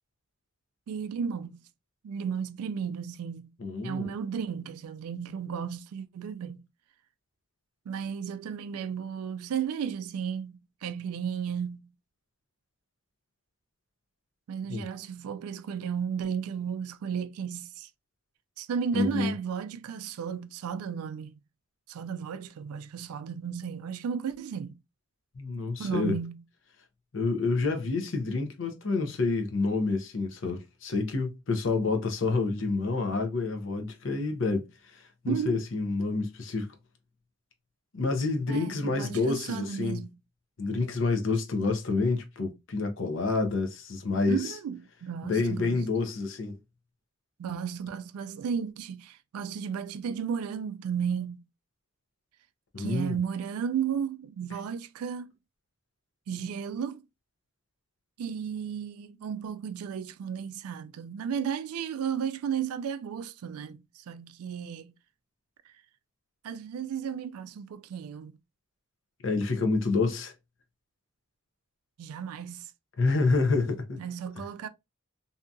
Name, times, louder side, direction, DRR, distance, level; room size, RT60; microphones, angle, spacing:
voice 1, 0.9-1.6 2.0-3.5 3.8-6.6 7.9-11.9 14.5-17.9 18.6-21.4 21.9-24.7 25.8-26.4 35.3-35.6 38.5-40.1 44.3-45.8 47.4-51.4 52.8-55.3 56.3-57.0 58.2-64.9 66.4-68.3 72.0-72.7 74.0-74.7, right 7 dB, 90° right, 0.3 m, -34 dB
voice 2, 3.6-4.1 14.7-14.9 18.9-19.3 25.3-26.2 27.1-36.7 37.9-40.0 40.6-44.5 45.2-46.6 52.7-53.2 54.5-54.6 69.2-70.3 73.0-74.0 74.4-74.5, left 3 dB, 60° left, 0.6 m, -28 dB
2.7 x 2.3 x 2.5 m
head